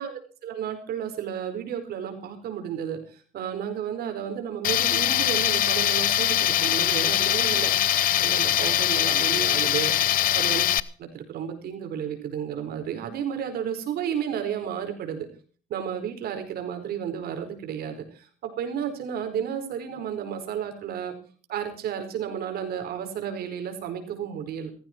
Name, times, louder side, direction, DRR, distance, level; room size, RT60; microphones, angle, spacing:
voice 1, 0.0-7.9 8.2-9.9 10.3-10.6 11.0-15.3 15.7-21.1 21.5-24.7, right 8 dB, 65° right, 6 dB, 4.7 m, -32 dB
Tools, 4.6-10.8, left 12 dB, 55° left, 0.7 m, -22 dB
16.0 x 15.0 x 4.6 m, 0.41 s
cardioid pair, 110°, 17 cm